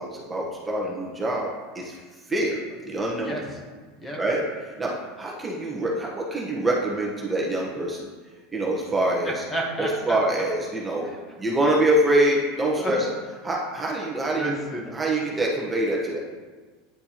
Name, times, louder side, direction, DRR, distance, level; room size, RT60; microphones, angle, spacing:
voice 1, 0.0-1.5 1.7-2.0 2.3-3.4 4.1-8.1 8.5-9.4 9.8-11.1 11.4-13.1 13.4-14.5 14.9-16.2, right 1 dB, 15° right, -3 dB, 1.0 m, -25 dB
voice 2, 9.2-10.2 11.0-11.2 12.8-12.9 14.3-14.9, right 1 dB, 15° left, 0 dB, 1.2 m, -31 dB
9.9 x 4.3 x 2.9 m, 1.4 s
supercardioid pair, 130°, 0 cm